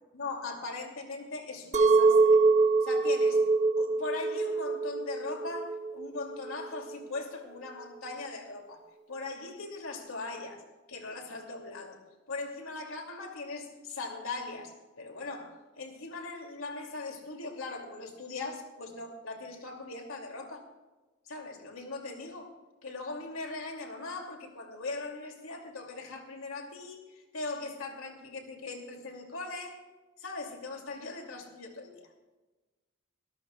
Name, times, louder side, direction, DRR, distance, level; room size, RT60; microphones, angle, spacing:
voice 1, 0.1-2.4 2.8-3.5 3.8-8.8 9.1-10.6 10.9-12.0 12.3-20.6 21.3-29.9 30.2-32.1, left 3 dB, 80° left, 2 dB, 2.6 m, -40 dB
Chink clink, 1.7-6.9, right 3 dB, 35° right, 0.9 m, -24 dB
23.0 x 14.0 x 2.4 m, 1.2 s
head